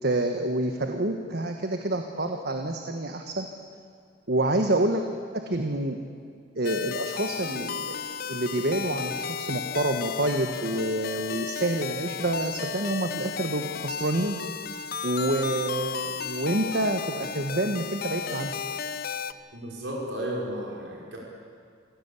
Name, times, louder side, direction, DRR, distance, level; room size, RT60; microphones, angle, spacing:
voice 1, 0.0-3.5 4.3-5.0 5.3-6.0 6.5-8.0 8.3-14.4 15.0-18.6, right 1 dB, 60° right, 5 dB, 1.4 m, -28 dB
sound 1, 6.6-19.3, left 6 dB, 55° left, 0.7 m, -34 dB
voice 2, 19.5-21.2, right 1 dB, 80° right, -3 dB, 5.5 m, -33 dB
27.5 x 16.5 x 8.4 m, 2.2 s
head